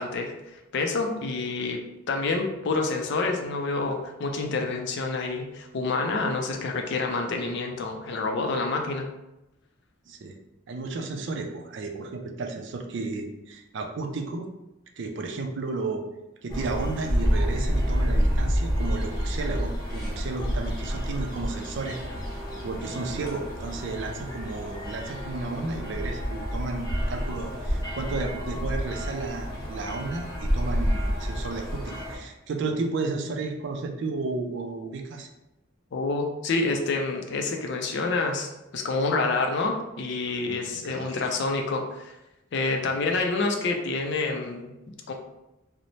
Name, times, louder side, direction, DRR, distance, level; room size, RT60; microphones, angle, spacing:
voice 1, 0.0-1.8 2.1-9.1 35.9-42.1 42.5-44.7 45.1-45.2, left 3 dB, 60° left, 3 dB, 0.4 m, -28 dB
voice 2, 10.1-10.4 10.7-14.5 15.0-16.0 16.4-22.0 22.6-35.3 40.5-41.2, right 3 dB, 60° right, 3 dB, 0.4 m, -33 dB
sound 1, 16.5-32.2, equal, 20° left, 0.9 m, -29 dB
2.6 x 2.0 x 3.0 m, 0.94 s
head